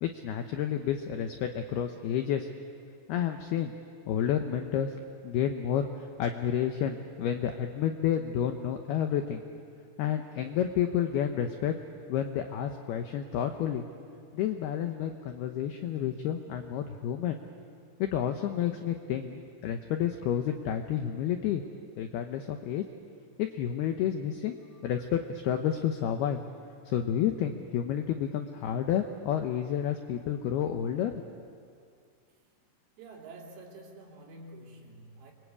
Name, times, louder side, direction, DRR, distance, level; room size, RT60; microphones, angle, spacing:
voice 1, 0.0-2.5 3.1-3.7 4.1-4.9 5.2-9.4 10.0-11.7 12.1-13.9 14.3-17.4 18.0-21.6 22.0-22.8 23.4-24.6 24.8-26.4 26.9-31.2, left 9 dB, 85° left, 6 dB, 2.3 m, -30 dB
voice 2, 33.0-35.3, right 2 dB, 60° right, -1 dB, 5.1 m, -48 dB
28.5 x 24.0 x 8.4 m, 2.3 s
omnidirectional pair, 5.9 m